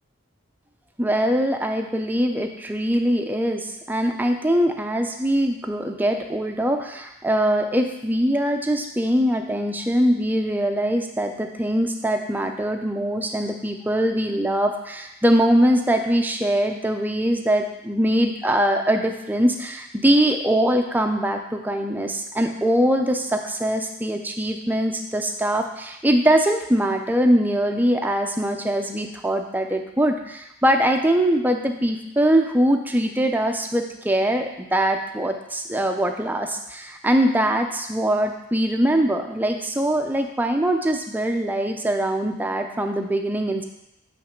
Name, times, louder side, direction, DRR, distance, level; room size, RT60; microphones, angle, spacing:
voice 1, 1.0-43.6, right 1 dB, 10° right, 4 dB, 0.4 m, -22 dB
8.8 x 3.2 x 5.1 m, 0.87 s
head